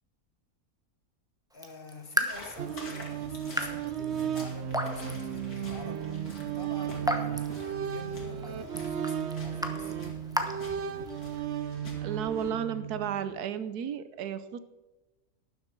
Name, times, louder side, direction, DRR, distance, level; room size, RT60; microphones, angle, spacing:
voice 1, 1.5-6.0 6.4-10.0, left 3 dB, 40° left, 6 dB, 1.3 m, -48 dB
Raindrop / Drip, 1.5-11.4, equal, 5° right, 0.7 m, -37 dB
sound 1, 2.3-12.5, left 2 dB, 75° left, 2.8 m, -48 dB
sound 2, 2.6-13.2, right 9 dB, 60° right, 0.8 m, -35 dB
voice 2, 12.0-14.6, right 8 dB, 85° right, 12 dB, 1.3 m, -33 dB
12.0 x 10.5 x 4.5 m, 1.1 s
omnidirectional pair, 1.6 m